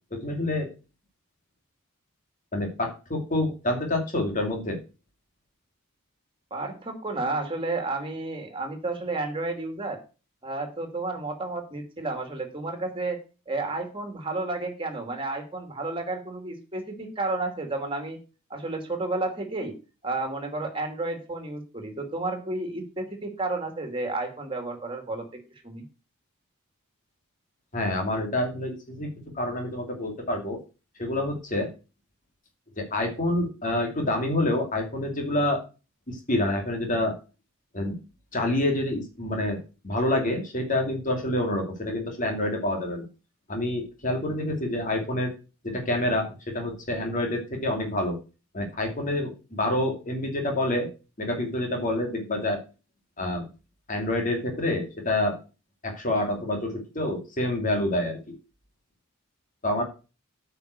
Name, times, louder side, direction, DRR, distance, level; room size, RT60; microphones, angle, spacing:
voice 1, 0.1-0.7 2.5-4.8 27.7-30.6 31.0-31.7 32.8-35.6 36.1-37.2 37.7-38.0 38.3-43.1 43.5-45.3 45.6-48.2 48.5-50.9 51.2-52.6 53.2-53.5 53.9-55.4 55.8-58.3 59.6-59.8, left 1 dB, 35° left, 2 dB, 2.6 m, -27 dB
voice 2, 6.5-10.0 10.4-18.2 18.5-19.7 20.0-25.3 25.6-25.8, right 2 dB, 25° right, 5 dB, 2.6 m, -31 dB
9.3 x 5.7 x 8.2 m, 0.33 s
head